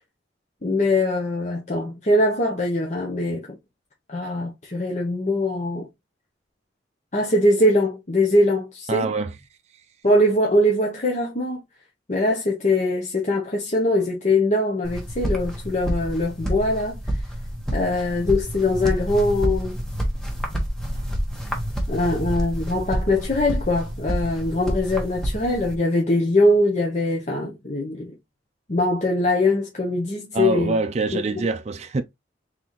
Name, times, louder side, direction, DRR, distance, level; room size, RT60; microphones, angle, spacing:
voice 1, 0.6-3.6 4.1-5.9 7.1-9.1 10.0-11.6 12.1-17.0 17.7-19.8 21.9-28.1 28.7-30.8 31.3-31.4, left 1 dB, 40° left, 0.9 m, -22 dB
voice 2, 8.9-9.4 21.0-21.1 30.3-32.0, right 3 dB, 35° right, 0.4 m, -25 dB
sound 1, 14.8-25.8, equal, 5° left, 1.1 m, -28 dB
4.0 x 3.4 x 3.0 m
head